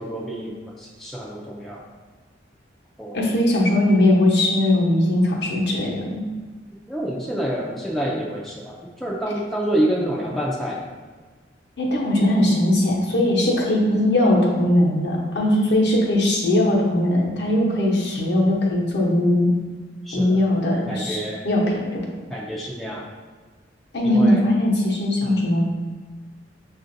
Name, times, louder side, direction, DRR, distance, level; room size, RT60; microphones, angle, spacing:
voice 1, 0.0-1.8 3.0-3.2 6.9-10.8 20.0-20.4 20.9-21.4 22.3-23.0 24.0-24.4 25.2-25.5, right 1 dB, ahead, -6 dB, 0.4 m, -27 dB
voice 2, 3.1-6.2 11.8-19.5 20.1-22.0 23.9-25.7, left 1 dB, 60° left, -3 dB, 0.8 m, -20 dB
6.4 x 2.5 x 2.6 m, 1.4 s
head